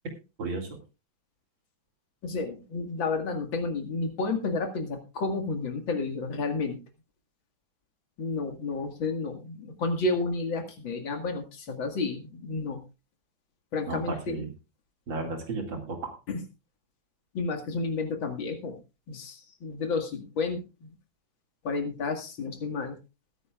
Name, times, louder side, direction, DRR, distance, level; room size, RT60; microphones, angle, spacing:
voice 1, 0.4-0.8 13.9-14.5 15.1-16.1, right 3 dB, 60° right, 3 dB, 3.1 m, -33 dB
voice 2, 2.2-6.8 8.2-12.8 13.7-14.5 16.3-16.4 17.3-18.8 19.1-20.9 21.6-23.0, left 3 dB, 65° left, 5 dB, 2.6 m, -31 dB
20.0 x 9.6 x 2.4 m, 0.29 s
omnidirectional pair, 2.3 m